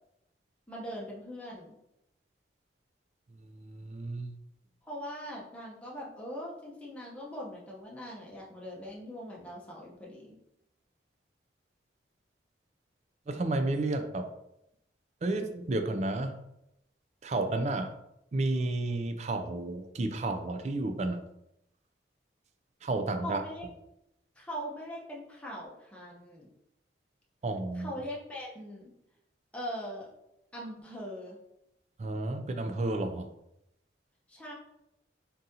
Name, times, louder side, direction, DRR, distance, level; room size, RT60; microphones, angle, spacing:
voice 1, 0.7-1.7 4.8-10.4 23.2-23.7 24.4-26.5 27.7-28.9 29.5-30.1 30.5-31.4 34.3-34.5, equal, 5° left, -5 dB, 0.8 m, -41 dB
voice 2, 3.4-4.3 13.3-14.3 15.2-16.3 17.2-17.9 18.3-21.2 22.8-23.4 27.4-27.9 32.0-33.3, right 2 dB, 40° right, 6 dB, 0.3 m, -31 dB
4.0 x 3.7 x 2.7 m, 0.83 s
head